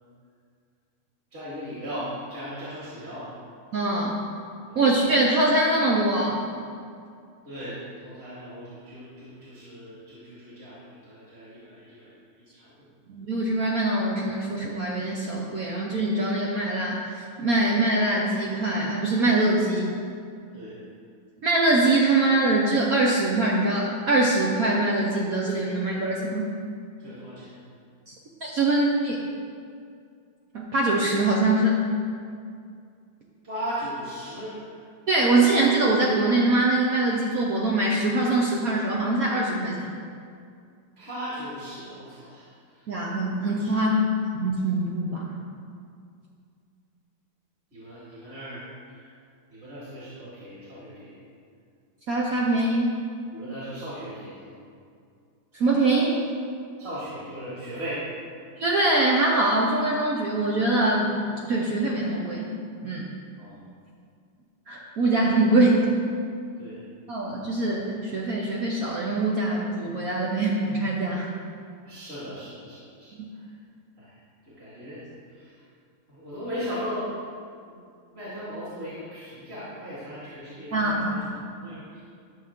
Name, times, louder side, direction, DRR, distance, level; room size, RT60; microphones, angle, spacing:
voice 1, 1.3-3.3 4.7-4.8 7.4-12.8 20.5-20.8 27.0-27.6 33.4-34.8 41.0-42.9 43.7-43.8 47.7-49.1 49.5-51.2 53.3-54.6 56.8-58.0 63.4-63.6 66.6-66.9 71.9-73.5 74.0-74.2 74.4-75.6 76.1-77.1 77.6-77.8 78.1-81.2 81.5-82.0, equal, 35° right, -10 dB, 2.3 m, -38 dB
voice 2, 3.7-4.2 4.7-6.4 13.1-19.9 21.4-26.5 28.1-28.2 28.4-29.1 30.5-31.8 35.1-39.9 42.9-45.4 52.1-52.9 55.5-56.2 58.6-61.2 61.4-62.5 62.8-63.1 64.7-65.8 67.1-71.3 73.1-73.2 80.7-81.2, right 2 dB, 55° right, -3 dB, 1.2 m, -23 dB
12.5 x 6.3 x 3.6 m, 2.3 s
omnidirectional pair, 2.1 m